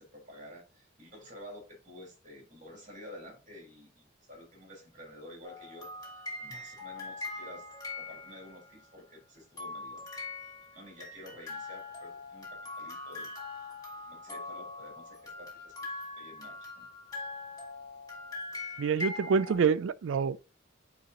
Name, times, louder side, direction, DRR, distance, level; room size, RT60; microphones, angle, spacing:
voice 1, 0.0-7.7 7.9-10.1 10.7-13.7 14.1-15.9 16.2-16.9, left 1 dB, 40° right, 3.8 m, -50 dB
sound 1, 5.4-8.8 9.6-19.5, left 3 dB, 20° left, 2.6 m, -42 dB
voice 2, 18.8-20.5, right 6 dB, 75° right, 0.4 m, -27 dB
9.4 x 3.7 x 2.9 m
head